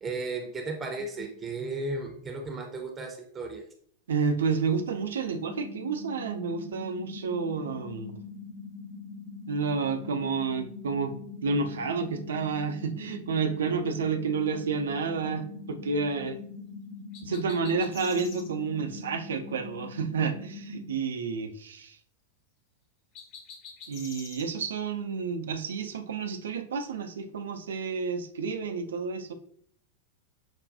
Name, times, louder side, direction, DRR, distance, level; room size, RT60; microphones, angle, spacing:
voice 1, 0.0-3.6, right 3 dB, 20° right, 3 dB, 0.6 m, -35 dB
voice 2, 4.1-8.1 9.5-11.1 11.4-16.4 17.2-22.0 23.9-29.3, right 5 dB, 65° right, 7 dB, 0.5 m, -30 dB
sound 1, 5.3-20.9, left 4 dB, 80° left, 1.1 m, -43 dB
sound 2, 17.1-18.5 23.1-24.5, left 5 dB, 40° left, 0.8 m, -46 dB
6.1 x 2.3 x 2.5 m, 0.62 s
figure-of-eight pair, 90°, 0 cm